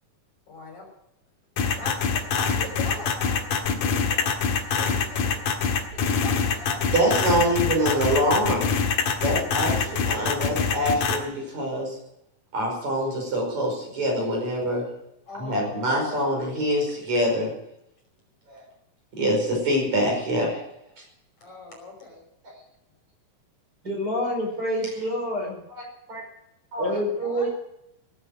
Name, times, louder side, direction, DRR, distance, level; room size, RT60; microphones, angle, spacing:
voice 1, 0.5-0.8 1.8-4.3 4.7-5.4 5.9-6.8 7.2-7.3 10.0-10.4 15.3-16.2 21.4-22.2 26.8-27.5, left 2 dB, 50° left, 0 dB, 6.6 m, -40 dB
sound 1, 1.6-11.2, left 6 dB, 70° left, 3.2 m, -24 dB
voice 2, 6.9-8.7 9.2-12.0 12.5-14.9 15.4-17.6 18.5-18.7 19.2-20.6 21.0-21.1 22.4-22.6 25.7-26.2 26.7-27.0, equal, 50° right, 0 dB, 6.6 m, -25 dB
voice 3, 23.8-25.6 26.8-27.5, equal, 25° right, -1 dB, 5.6 m, -27 dB
18.0 x 9.9 x 7.8 m, 0.79 s
omnidirectional pair, 4.0 m